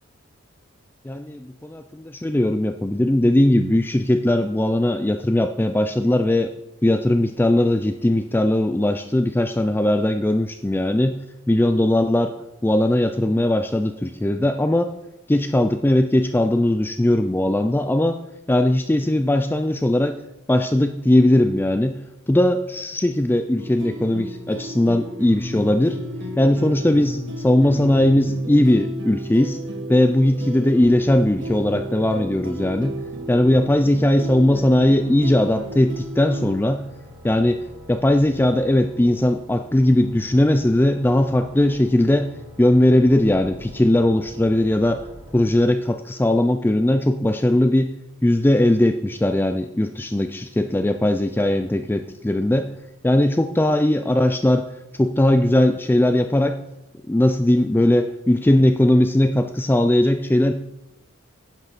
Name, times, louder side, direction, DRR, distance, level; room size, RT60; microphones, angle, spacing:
voice 1, 1.0-6.5 6.8-11.1 11.5-12.3 12.6-14.9 15.3-18.2 18.5-20.2 20.5-22.0 22.3-26.0 26.4-29.6 29.9-32.9 33.3-36.8 37.2-37.6 37.9-42.3 42.6-45.0 45.3-47.9 48.2-52.7 53.0-54.7 54.9-56.6 57.1-60.5, left 1 dB, 10° left, 8 dB, 0.4 m, -19 dB
sound 1, 23.6-36.6, equal, 60° right, 1.8 m, -33 dB
sound 2, 30.8-45.5, equal, 25° right, 5.0 m, -44 dB
10.5 x 10.0 x 4.2 m, 0.91 s
head